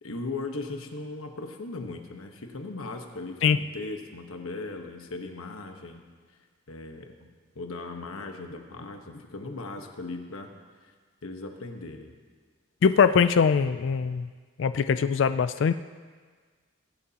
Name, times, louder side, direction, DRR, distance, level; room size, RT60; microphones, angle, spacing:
voice 1, 0.0-6.1 6.7-7.3 7.5-10.5 10.8-10.9 11.2-12.1, left 3 dB, 90° left, 4 dB, 1.2 m, -38 dB
voice 2, 12.8-14.3 14.6-15.7, left 6 dB, 60° left, 12 dB, 0.3 m, -22 dB
23.5 x 11.0 x 2.9 m, 1.5 s
head